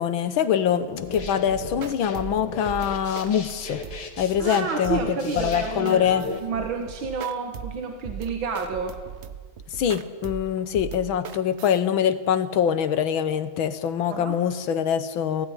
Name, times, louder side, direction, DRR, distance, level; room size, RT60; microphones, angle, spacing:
voice 1, 0.0-3.8 4.2-6.3 9.7-15.5, left 9 dB, 75° left, 12 dB, 1.8 m, -24 dB
sound 1, 0.9-6.4, left 4 dB, 55° left, 2.7 m, -37 dB
sound 2, 1.1-11.8, right 8 dB, 50° right, 0.8 m, -39 dB
voice 2, 4.4-9.0 14.1-14.4, right 5 dB, 75° right, 4 dB, 2.1 m, -30 dB
17.0 x 15.5 x 9.9 m, 1.4 s
omnidirectional pair, 2.2 m